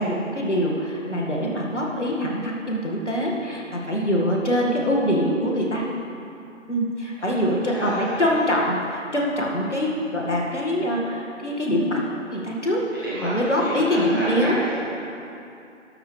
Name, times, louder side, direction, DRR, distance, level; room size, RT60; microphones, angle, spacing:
voice 1, 0.0-5.9 6.7-12.0 12.3-14.6, equal, 65° left, -2 dB, 2.3 m, -24 dB
voice 2, 7.7-8.2 13.0-14.8, equal, 15° right, -12 dB, 2.4 m, -30 dB
13.0 x 12.5 x 3.4 m, 2.7 s
figure-of-eight pair, 175°, 38 cm